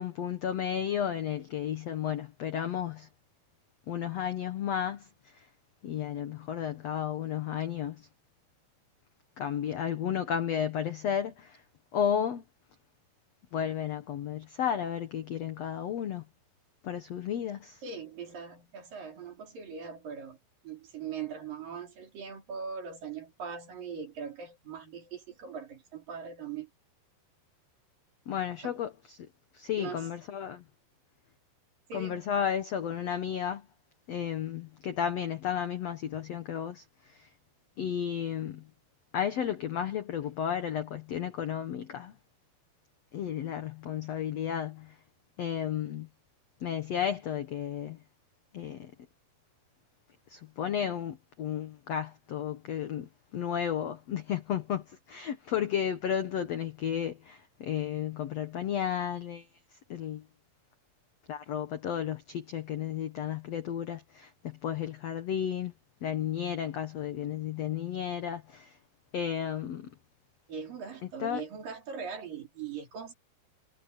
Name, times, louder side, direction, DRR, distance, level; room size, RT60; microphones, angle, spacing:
voice 1, 0.0-3.1 3.9-5.5 5.8-8.1 9.4-11.6 11.9-12.4 13.5-16.2 16.8-17.8 28.3-29.2 29.5-30.6 31.9-33.7 34.1-37.3 37.8-38.7 39.1-42.2 43.1-44.9 45.4-46.1 46.6-48.0 48.5-48.9 50.3-59.5 59.9-60.2 61.3-65.7 66.0-68.8 69.1-69.9 71.2-71.4, left 9 dB, 75° left, 1.5 m, -33 dB
voice 2, 17.8-20.4 20.6-26.7 29.8-30.1 31.9-32.2 70.5-73.1, right 6 dB, 55° right, 5.7 m, -40 dB
omnidirectional pair, 4.7 m